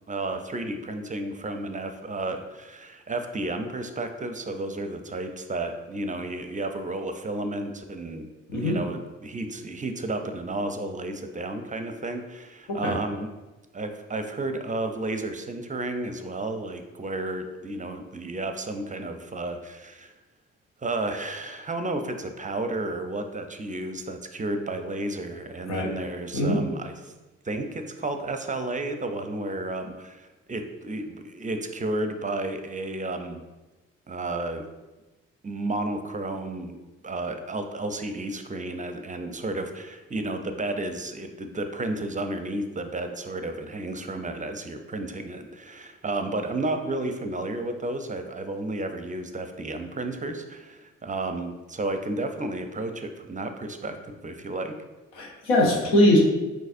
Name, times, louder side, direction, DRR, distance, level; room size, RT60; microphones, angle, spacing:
voice 1, 0.1-13.3 13.7-20.1 20.8-27.1 27.4-33.4 34.1-34.6 35.4-36.8 37.0-54.7, right 2 dB, 20° right, 7 dB, 0.5 m, -32 dB
voice 2, 55.2-56.2, left 1 dB, 90° left, -1 dB, 0.8 m, -21 dB
4.7 x 4.0 x 2.5 m, 1.1 s
hypercardioid pair, 40°, 34 cm